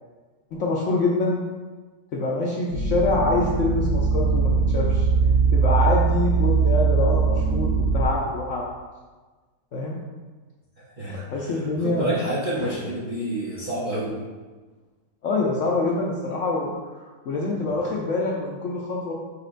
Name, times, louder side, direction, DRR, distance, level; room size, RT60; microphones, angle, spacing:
voice 1, 0.5-1.4 2.1-5.1 5.5-8.7 9.7-10.0 11.1-12.2 12.6-12.7 15.2-19.1, left 3 dB, 70° left, -3 dB, 0.7 m, -25 dB
sound 1, 2.7-8.0, right 5 dB, 70° right, 1.8 m, -21 dB
voice 2, 10.8-14.2, right 1 dB, 50° right, -8 dB, 0.5 m, -29 dB
4.9 x 4.3 x 2.5 m, 1.3 s
omnidirectional pair, 1.8 m